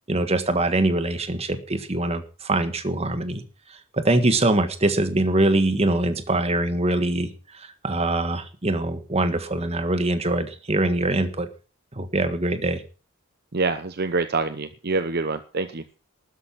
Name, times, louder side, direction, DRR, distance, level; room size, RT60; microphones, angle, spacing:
voice 1, 0.1-3.4 3.9-11.5 11.9-12.8, right 2 dB, 30° right, 10 dB, 1.5 m, -23 dB
voice 2, 13.5-16.0, right 3 dB, 50° right, 11 dB, 0.8 m, -26 dB
13.0 x 11.0 x 5.9 m, 0.36 s
head